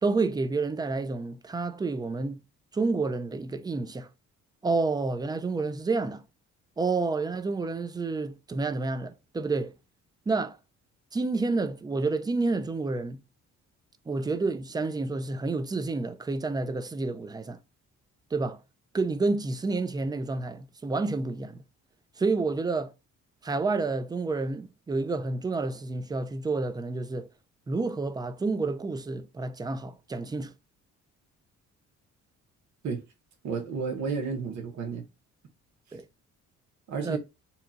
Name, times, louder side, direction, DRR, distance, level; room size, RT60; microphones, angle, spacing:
voice 1, 0.0-2.4 2.7-4.1 4.6-6.2 6.8-9.7 10.3-10.6 11.1-13.2 14.1-17.6 18.3-18.6 18.9-21.6 22.2-22.9 23.4-27.3 27.7-30.5 35.9-36.0 37.0-37.2, right 3 dB, 15° right, 0.3 m, -29 dB
voice 2, 33.4-35.0 36.9-37.2, right 5 dB, 65° right, 1.0 m, -31 dB
2.8 x 2.3 x 3.8 m
cardioid pair, 90°, 30 cm